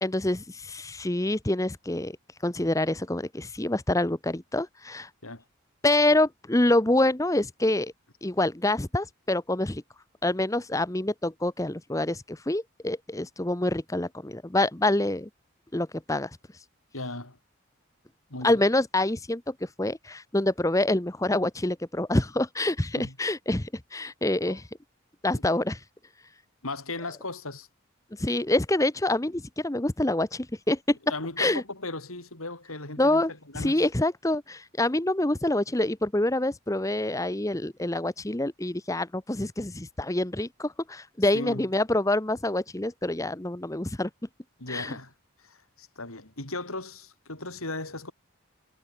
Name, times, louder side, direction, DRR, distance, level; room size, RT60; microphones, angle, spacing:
voice 1, 0.0-2.2 2.4-5.1 5.8-7.9 8.2-9.8 10.2-15.3 15.7-16.3 18.4-24.6 25.2-25.8 28.2-31.0 31.4-31.6 33.0-44.1 44.7-44.9, left 1 dB, 15° left, 0.8 m, -26 dB
voice 2, 16.9-17.4 18.3-18.6 23.0-23.2 24.5-24.6 26.6-27.7 31.1-33.8 41.2-41.7 44.6-45.1 45.4-48.1, left 2 dB, 85° left, 7.4 m, -37 dB
head